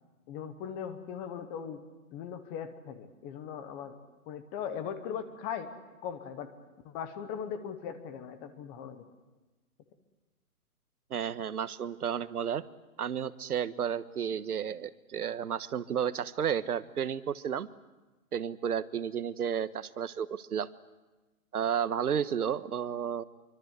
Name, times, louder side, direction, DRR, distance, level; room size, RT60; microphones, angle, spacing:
voice 1, 0.3-1.8 2.1-4.0 4.3-5.7 6.0-6.5 6.8-9.0, left 8 dB, 15° left, 11 dB, 0.9 m, -39 dB
voice 2, 11.1-12.6 13.0-17.7 18.3-20.7 21.5-23.2, right 8 dB, 75° right, 14 dB, 1.4 m, -32 dB
25.5 x 24.5 x 8.1 m, 1.2 s
hypercardioid pair, 160°, 45 cm